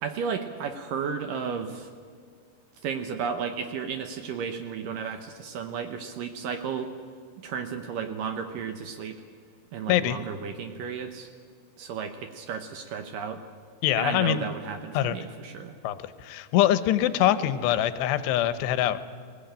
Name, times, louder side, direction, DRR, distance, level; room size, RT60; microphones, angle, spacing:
voice 1, 0.0-1.9 2.8-6.9 7.4-9.2 9.7-11.3 11.8-13.4 14.0-15.7, right 6 dB, 70° right, 7 dB, 2.2 m, -33 dB
voice 2, 13.8-14.4 14.9-15.2 15.8-16.0 16.2-19.0, left 12 dB, 90° left, 13 dB, 3.0 m, -23 dB
20.5 x 18.0 x 8.9 m, 2.1 s
omnidirectional pair, 4.8 m